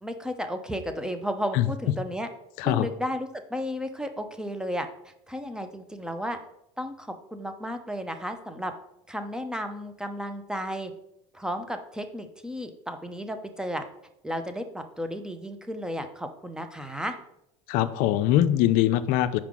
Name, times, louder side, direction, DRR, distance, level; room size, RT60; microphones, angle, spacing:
voice 1, 0.0-2.3 2.6-6.4 6.8-8.7 9.1-10.9 11.3-13.8 14.2-17.1, equal, 5° right, 7 dB, 0.6 m, -33 dB
voice 2, 17.7-19.4, left 13 dB, 60° left, 12 dB, 0.5 m, -22 dB
5.7 x 4.9 x 3.6 m, 0.81 s
supercardioid pair, 105°, 16 cm